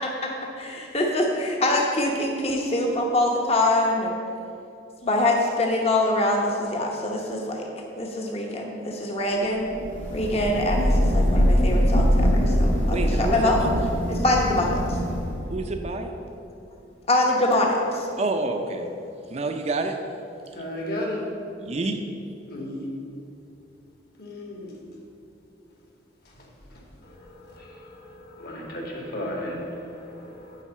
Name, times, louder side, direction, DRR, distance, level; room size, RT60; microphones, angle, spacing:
voice 1, 0.6-4.2 5.0-7.7 8.0-9.7 10.1-13.6 14.1-15.0 17.1-18.1, left 1 dB, 35° left, 0.9 m, -24 dB
Thunder / Rain, 9.8-15.5, equal, 80° left, 1.6 m, -22 dB
voice 2, 12.9-13.9 15.5-16.1 18.2-18.9 19.3-19.9 21.6-22.0, right 2 dB, 35° right, 0.5 m, -28 dB
voice 3, 20.5-21.3 22.5-22.9 24.2-24.7 27.0-30.6, left 1 dB, 55° left, 1.8 m, -35 dB
10.0 x 4.0 x 7.3 m
head